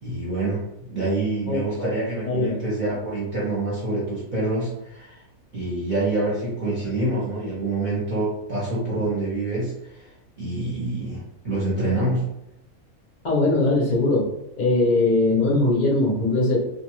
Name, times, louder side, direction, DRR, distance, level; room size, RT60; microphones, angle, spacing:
voice 1, 0.0-5.2 5.5-10.1 10.4-11.2 11.4-12.3, right 2 dB, 40° right, -8 dB, 0.7 m, -26 dB
voice 2, 1.5-1.9 2.3-2.6 13.2-14.3 14.6-16.6, left 2 dB, 45° left, -3 dB, 0.6 m, -21 dB
2.6 x 2.2 x 3.0 m, 0.83 s
omnidirectional pair, 1.6 m